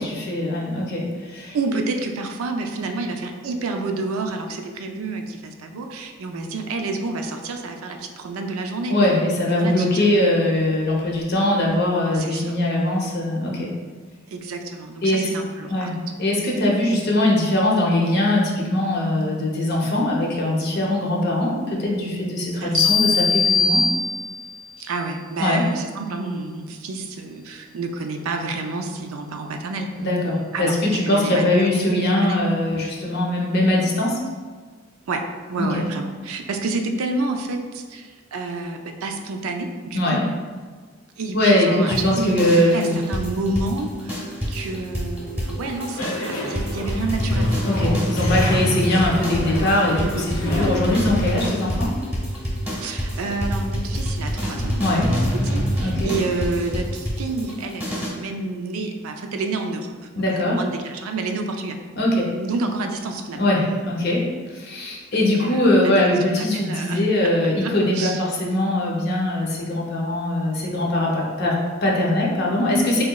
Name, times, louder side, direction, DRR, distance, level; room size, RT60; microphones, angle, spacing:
voice 1, 0.0-1.6 8.9-13.7 15.0-15.3 15.7-23.8 25.4-25.6 30.0-34.2 35.6-35.8 39.9-40.3 41.3-43.0 47.6-51.9 54.8-55.1 55.8-56.1 60.2-60.6 62.0-62.3 63.4-73.0, left 1 dB, 50° left, -3 dB, 0.6 m, -21 dB
voice 2, 1.5-9.1 9.5-10.6 12.1-12.5 14.3-15.9 22.6-22.9 24.8-29.9 30.5-31.5 31.7-32.4 35.1-40.2 41.2-47.6 50.0-50.3 52.8-55.0 55.3-59.9 60.2-61.8 62.3-63.5 65.1-65.6 66.3-68.2, right 3 dB, 90° right, 4 dB, 0.4 m, -29 dB
sound 1, 22.7-24.6, left 4 dB, 40° right, 0.6 m, -20 dB
sound 2, 41.9-58.1, equal, 10° right, 0.8 m, -26 dB
sound 3, 45.6-51.5, left 1 dB, 90° left, 0.8 m, -32 dB
4.0 x 2.8 x 2.2 m, 1.5 s
head